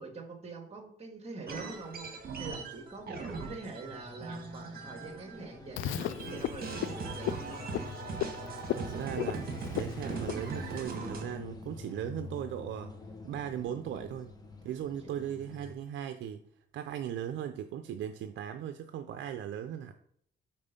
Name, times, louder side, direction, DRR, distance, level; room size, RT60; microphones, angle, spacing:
voice 1, 0.0-7.7, right 3 dB, 30° right, 4 dB, 1.7 m, -44 dB
sound 1, 1.4-15.7, left 3 dB, 20° left, 1.0 m, -47 dB
sound 2, 1.5-5.5 5.8-11.2, right 4 dB, 50° right, 1.5 m, -41 dB
Frog, 5.8-11.0, left 12 dB, 80° left, 0.4 m, -37 dB
voice 2, 8.7-9.5 9.8-12.9 13.2-14.3 14.6-16.4 16.7-19.9, right 10 dB, 70° right, 9 dB, 0.5 m, -38 dB
5.3 x 4.4 x 5.2 m, 0.68 s
cardioid pair, 90°, 20 cm